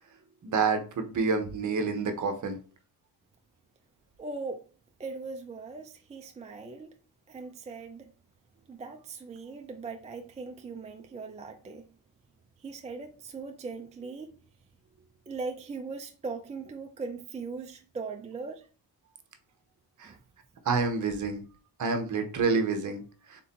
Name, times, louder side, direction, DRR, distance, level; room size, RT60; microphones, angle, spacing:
voice 1, 0.4-2.6 20.0-20.1 20.7-21.4 21.8-23.0, right 4 dB, 45° right, 0.8 m, -28 dB
voice 2, 4.2-4.7 5.0-6.9 7.3-8.1 8.7-11.8 12.6-14.3 15.3-18.7 20.0-20.2, right 4 dB, 20° right, 0.3 m, -39 dB
3.7 x 2.7 x 4.2 m
wide cardioid pair, 140°, 42 cm